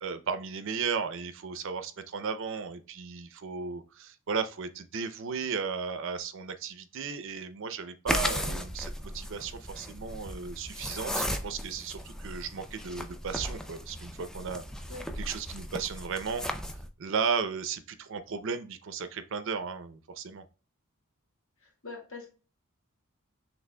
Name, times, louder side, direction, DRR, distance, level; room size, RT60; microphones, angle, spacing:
voice 1, 0.0-14.6 15.2-16.4 17.0-20.4, right 5 dB, 60° right, 11 dB, 0.5 m, -35 dB
sound 1, 8.1-16.9, equal, 5° left, 0.3 m, -36 dB
voice 2, 21.6-22.3, left 3 dB, 75° left, -2 dB, 2.3 m, -44 dB
5.9 x 3.4 x 2.2 m, 0.35 s
head